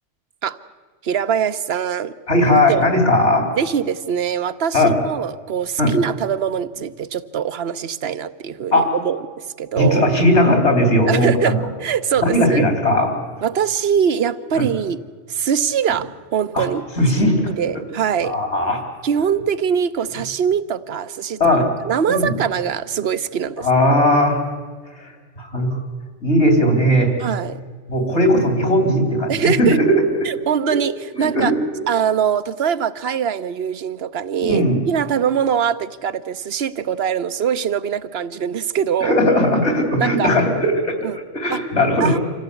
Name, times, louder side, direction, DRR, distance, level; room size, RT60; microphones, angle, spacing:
voice 1, 1.0-2.1 2.7-2.8 3.5-10.1 11.1-12.7 13.4-15.0 15.3-16.8 17.5-18.4 19.0-21.4 21.8-24.0 27.2-27.6 29.3-29.8 30.2-31.5 31.9-39.1 40.0-40.3 41.0-41.2 41.5-41.6 42.0-42.2, right 8 dB, 65° right, 14 dB, 1.1 m, -22 dB
voice 2, 2.3-3.4 4.7-4.9 5.8-6.0 8.7-8.9 9.8-11.6 12.2-13.1 14.6-14.7 16.5-16.7 17.0-17.5 18.2-18.8 21.4-21.7 22.1-22.3 23.6-24.4 25.0-25.1 25.4-25.8 26.2-27.1 27.9-29.9 31.2-31.8 34.4-34.8 39.0-41.0 41.3-42.2, left 1 dB, 75° left, 4 dB, 3.8 m, -17 dB
26.0 x 15.5 x 8.3 m, 1.5 s
omnidirectional pair, 1.1 m